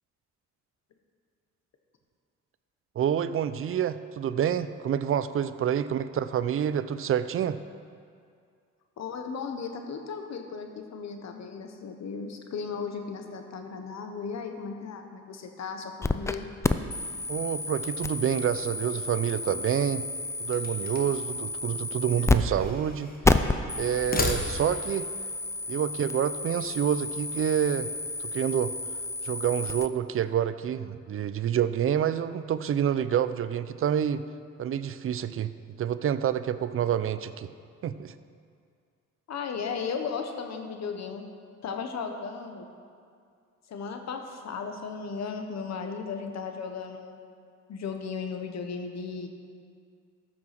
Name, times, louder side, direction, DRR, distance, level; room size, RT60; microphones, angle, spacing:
voice 1, 3.0-7.6 17.3-20.0 20.4-23.1 23.7-25.1 25.7-27.9 28.2-28.7 29.2-34.2 34.6-35.5 35.8-37.5 37.8-38.1, right 9 dB, 45° right, 13 dB, 0.5 m, -28 dB
voice 2, 9.0-16.5 39.3-41.2 41.6-42.7 43.7-47.2 47.7-49.3, left 5 dB, 60° left, 5 dB, 1.3 m, -36 dB
sound 1, 16.0-16.4 16.6-22.4 22.6-22.7 23.2-29.9, left 3 dB, 10° left, 0.4 m, -30 dB
sound 2, 20.5-21.3 22.2-23.2 23.9-24.9, left 2 dB, 30° left, 1.2 m, -34 dB
14.0 x 6.0 x 6.0 m, 2.3 s
cardioid pair, 90°, 30 cm